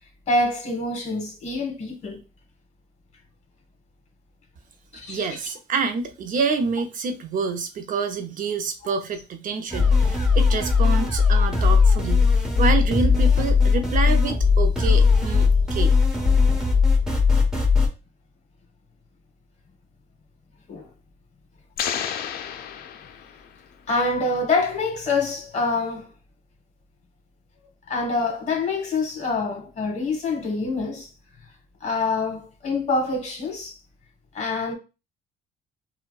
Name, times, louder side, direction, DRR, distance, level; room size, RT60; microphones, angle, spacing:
voice 1, 0.3-2.2 4.9-5.3 20.7-20.9 23.9-26.1 27.9-31.1 31.8-33.7 34.3-34.7, left 3 dB, 40° left, 1.4 m, -26 dB
voice 2, 5.1-12.3 12.6-16.0, right 4 dB, 50° right, 0.6 m, -27 dB
sound 1, 9.7-17.9, left 5 dB, 5° right, 1.1 m, -18 dB
sound 2, 21.8-23.7, left 8 dB, 65° left, 0.4 m, -31 dB
4.5 x 2.2 x 2.3 m
cardioid pair, 110°, 17 cm